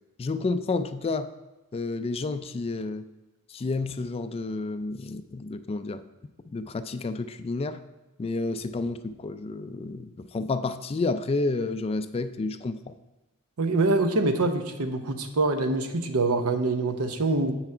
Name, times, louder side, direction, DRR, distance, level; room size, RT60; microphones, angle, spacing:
voice 1, 0.2-1.3 1.7-3.0 3.5-6.0 6.5-7.8 8.2-12.8, left 3 dB, 25° left, 11 dB, 0.3 m, -30 dB
voice 2, 13.6-17.5, right 2 dB, 80° right, 7 dB, 0.8 m, -25 dB
7.9 x 6.0 x 4.4 m, 1.1 s
head